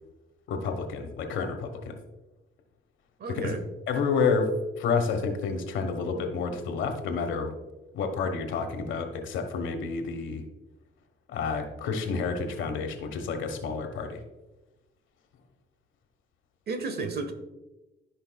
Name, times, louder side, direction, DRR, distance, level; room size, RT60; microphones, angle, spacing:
voice 1, 0.5-2.0 3.3-3.6 3.9-4.5 4.8-7.5 7.9-10.4 11.3-14.2, left 5 dB, 80° left, 5 dB, 1.2 m, -29 dB
voice 2, 3.2-3.6 16.7-17.3, right 4 dB, 55° right, 8 dB, 1.3 m, -32 dB
13.5 x 5.3 x 2.3 m, 1.0 s
cardioid pair, 90°, 20 cm